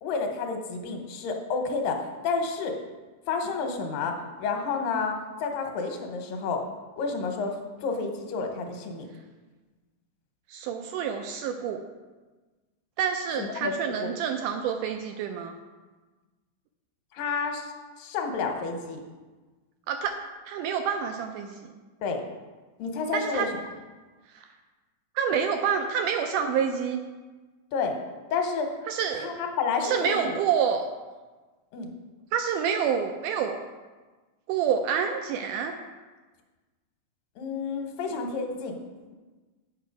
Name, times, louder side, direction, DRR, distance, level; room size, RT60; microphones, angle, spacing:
voice 1, 0.0-2.8 3.3-6.6 7.0-9.1 13.4-13.7 14.0-14.1 17.1-19.0 22.0-22.2 22.8-23.5 27.7-28.0 28.3-28.7 29.2-30.4 31.7-31.9 37.4-38.8, left 4 dB, 75° left, 4 dB, 2.5 m, -30 dB
voice 2, 10.5-11.8 13.0-15.5 19.9-20.1 20.5-21.7 23.1-23.5 24.3-24.4 25.1-27.0 28.9-29.4 29.8-30.8 32.3-33.6 34.5-35.7, right 7 dB, 85° right, 5 dB, 1.8 m, -28 dB
9.0 x 5.6 x 5.1 m, 1.3 s
omnidirectional pair, 4.2 m